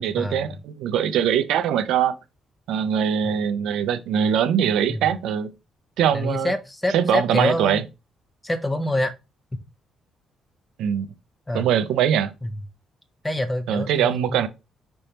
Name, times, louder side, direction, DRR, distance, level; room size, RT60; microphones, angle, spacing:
voice 1, 0.0-2.1 2.7-5.5 6.0-6.5 6.9-7.8 10.8-11.1 11.5-12.3 13.7-14.5, right 9 dB, 85° right, 0.5 m, -22 dB
voice 2, 6.1-7.8 8.4-9.1 11.5-11.7 12.4-12.5 13.2-14.5, left 1 dB, 15° left, 0.8 m, -26 dB
5.2 x 3.4 x 2.9 m
cardioid pair, 90°, 0 cm